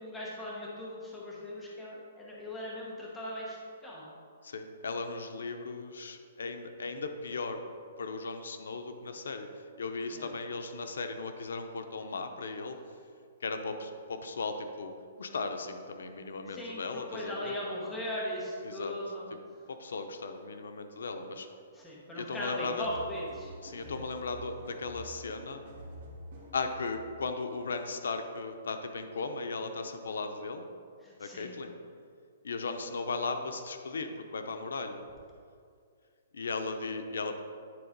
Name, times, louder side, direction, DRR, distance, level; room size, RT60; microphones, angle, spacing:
voice 1, 0.0-4.1 10.1-10.3 16.5-19.3 21.7-23.5 23.8-24.0 31.0-31.6, left 1 dB, 5° left, -5 dB, 1.0 m, -39 dB
voice 2, 4.4-7.6 8.0-9.5 9.8-12.8 13.4-17.5 18.6-18.9 19.7-21.5 22.1-22.9 23.6-25.6 26.5-30.6 31.2-31.7 32.4-35.0 36.3-37.4, left 4 dB, 90° left, 7 dB, 0.7 m, -37 dB
sound 1, 22.8-27.0, right 1 dB, 40° right, 2.0 m, -48 dB
9.7 x 3.9 x 5.1 m, 2.3 s
hypercardioid pair, 180°, 0 cm